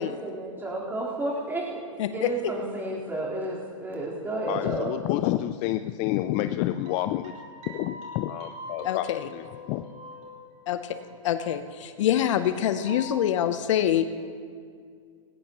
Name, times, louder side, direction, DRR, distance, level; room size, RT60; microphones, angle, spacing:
voice 1, 0.0-4.9, right 2 dB, 10° right, -5 dB, 4.1 m, -32 dB
voice 2, 4.5-7.3 7.7-9.1 9.3-9.8, left 14 dB, 40° left, 11 dB, 0.4 m, -29 dB
sound 1, 6.1-11.7 12.0-13.1, left 2 dB, 40° right, 4.6 m, -44 dB
voice 3, 8.8-9.3 10.7-11.0 11.2-14.2, left 10 dB, 65° left, 10 dB, 0.8 m, -25 dB
19.5 x 17.5 x 3.1 m, 2.2 s
hypercardioid pair, 120°, 17 cm